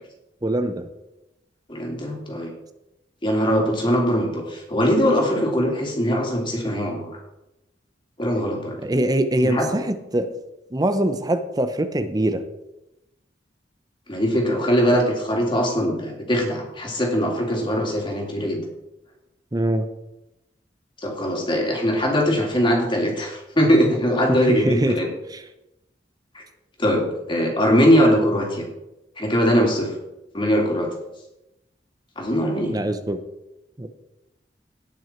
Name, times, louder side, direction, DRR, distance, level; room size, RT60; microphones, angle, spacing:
voice 1, 0.4-0.9 8.8-10.3 10.7-12.4 19.5-19.9 24.3-25.0 25.3-25.4 32.7-33.2 33.8-33.9, right 1 dB, 20° right, 9 dB, 0.8 m, -23 dB
voice 2, 1.7-2.5 3.2-7.0 8.2-8.8 9.4-9.7 14.1-18.6 21.0-25.1 26.3-26.4 26.8-28.6 29.2-29.9 30.3-30.9 32.2-32.7, equal, 30° left, 0 dB, 2.8 m, -21 dB
18.0 x 6.2 x 4.5 m, 0.93 s
head